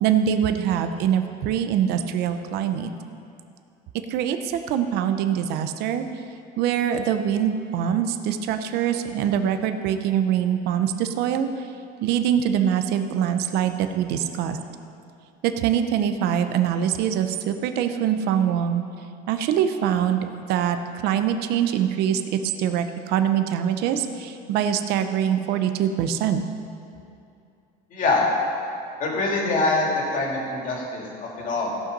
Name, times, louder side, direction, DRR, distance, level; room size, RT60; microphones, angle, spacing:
voice 1, 0.0-2.9 4.1-6.1 6.6-11.7 12.0-14.6 15.4-18.8 19.3-26.4, right 9 dB, 65° right, 8 dB, 0.8 m, -24 dB
voice 2, 27.9-28.3 29.0-31.7, left 3 dB, 45° left, -2 dB, 2.8 m, -24 dB
16.5 x 5.9 x 5.4 m, 2.5 s
cardioid pair, 125°, 18 cm